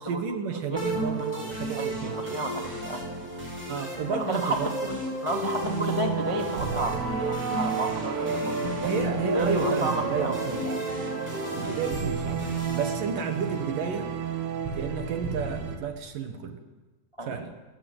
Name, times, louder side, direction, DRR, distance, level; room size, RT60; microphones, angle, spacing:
voice 1, 0.0-2.2 3.7-4.7 8.8-10.8 11.6-14.1 14.7-16.6 17.2-17.5, right 6 dB, 60° right, 6 dB, 2.9 m, -32 dB
voice 2, 0.7-3.4 4.1-8.3 8.6-8.9 9.3-10.4 17.2-17.3, right 1 dB, 15° left, 2 dB, 1.2 m, -32 dB
sound 1, 0.8-13.8, right 1 dB, 10° right, 6.2 m, -33 dB
sound 2, 5.5-15.8, right 6 dB, 80° right, 4.2 m, -32 dB
28.0 x 15.0 x 8.0 m, 1.2 s
omnidirectional pair, 4.7 m